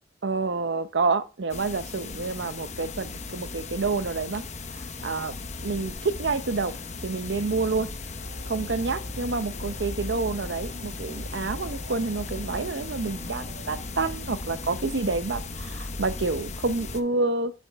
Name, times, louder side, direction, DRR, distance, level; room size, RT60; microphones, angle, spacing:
voice 1, 0.2-5.3 5.6-6.7 7.0-7.9 8.5-17.5, right 3 dB, 80° right, 0.7 m, -28 dB
sound 1, 1.5-17.0, left 3 dB, 40° left, 0.9 m, -36 dB
sound 2, 8.2-14.0, right 1 dB, 45° right, 2.7 m, -52 dB
12.0 x 7.0 x 3.4 m
head